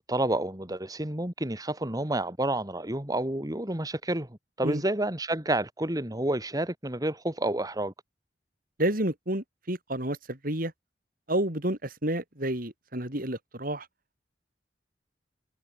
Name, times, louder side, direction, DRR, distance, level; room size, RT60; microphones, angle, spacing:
voice 1, 0.0-4.3 4.6-7.9, right 1 dB, 20° right, 3.0 m, -29 dB
voice 2, 8.8-10.7 11.3-13.9, right 1 dB, 55° right, 6.6 m, -30 dB
head